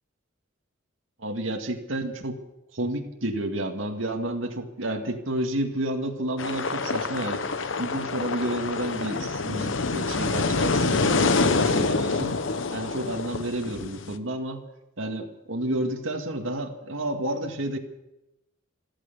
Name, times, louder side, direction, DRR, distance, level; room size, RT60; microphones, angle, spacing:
voice 1, 1.2-2.4 2.7-7.4 7.8-12.4 12.7-14.6 15.0-17.8, right 1 dB, 80° right, 3 dB, 2.1 m, -30 dB
sound 1, 6.4-14.1, left 3 dB, 70° left, 0.9 m, -26 dB
15.0 x 14.0 x 6.8 m, 0.91 s
head